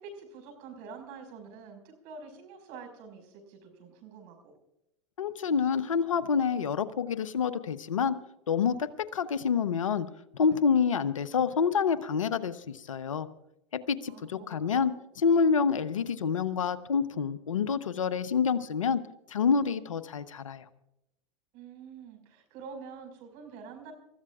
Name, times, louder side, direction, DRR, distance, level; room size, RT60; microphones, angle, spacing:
voice 1, 0.0-4.5 14.1-14.9 21.5-23.9, right 5 dB, 55° right, 5 dB, 5.4 m, -46 dB
voice 2, 5.2-8.2 8.5-10.1 10.3-13.3 13.9-14.9 15.2-19.0 19.3-20.6, left 6 dB, 90° left, 13 dB, 0.9 m, -27 dB
28.5 x 14.5 x 2.4 m, 0.84 s
hypercardioid pair, 100°, 16 cm